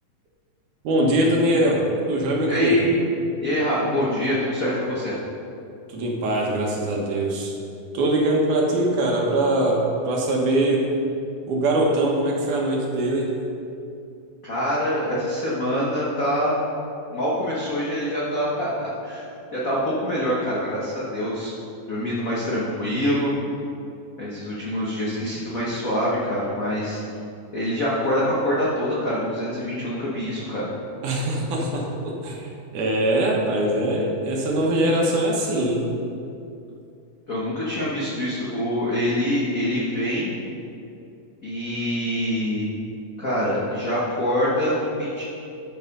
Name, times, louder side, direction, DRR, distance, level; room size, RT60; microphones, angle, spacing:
voice 1, 0.8-2.9 5.9-7.5 7.9-10.9 11.5-13.4 31.0-35.9, right 1 dB, 75° right, -1 dB, 2.7 m, -22 dB
voice 2, 2.5-3.0 3.4-5.1 14.4-16.6 17.1-19.2 19.5-21.5 21.9-23.3 24.2-27.0 27.5-30.7 37.3-40.3 41.4-42.7 43.2-45.2, equal, 75° left, -7 dB, 0.7 m, -25 dB
12.0 x 4.9 x 5.4 m, 2.6 s
omnidirectional pair, 3.7 m